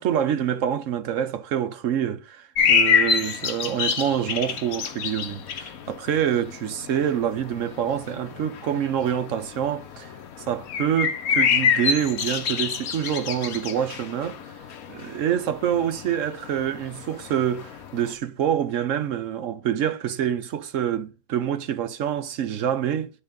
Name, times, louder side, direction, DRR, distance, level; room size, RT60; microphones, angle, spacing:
voice 1, 0.0-10.1 10.5-14.4 14.9-23.1, right 9 dB, 65° right, 1.0 m, -26 dB
sound 1, 2.6-18.1, left 6 dB, 80° left, 1.4 m, -27 dB
9.8 x 4.0 x 3.7 m
omnidirectional pair, 1.5 m